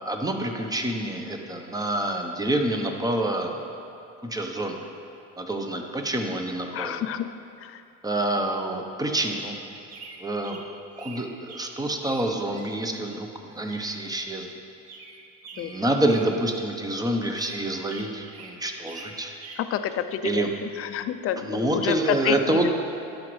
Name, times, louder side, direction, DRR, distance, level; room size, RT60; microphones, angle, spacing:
voice 1, 0.0-3.6 4.2-4.8 5.4-7.0 8.0-9.6 10.2-10.6 11.0-14.5 15.6-19.3 20.2-20.5 21.4-22.7, right 1 dB, 10° right, 4 dB, 0.7 m, -27 dB
voice 2, 6.7-7.3 7.6-7.8 15.6-15.7 19.7-20.5 20.8-21.9 22.2-22.7, left 9 dB, 40° left, 10 dB, 0.4 m, -29 dB
sound 1, 9.7-13.2 13.5-14.5 14.8-16.8 17.1-19.7, right 4 dB, 45° right, 0.9 m, -46 dB
12.0 x 5.1 x 3.2 m, 2.6 s
supercardioid pair, 95°, 34 cm